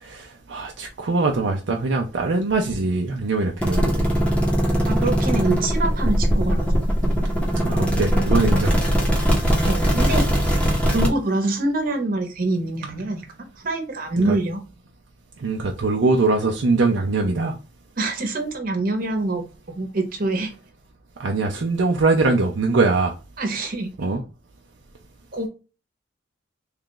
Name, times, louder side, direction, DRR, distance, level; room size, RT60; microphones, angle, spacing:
voice 1, 0.0-4.1 7.6-8.7 14.2-14.3 15.4-17.6 21.2-23.1 24.0-24.2, right 3 dB, 70° right, 0.5 m, -22 dB
sound 1, 3.6-11.1, equal, 5° left, 0.8 m, -20 dB
voice 2, 4.8-6.7 9.6-10.3 10.9-14.6 18.0-19.4 19.7-20.5 23.4-23.9 25.3-25.5, right 2 dB, 50° right, 1.0 m, -25 dB
3.3 x 2.4 x 3.7 m
head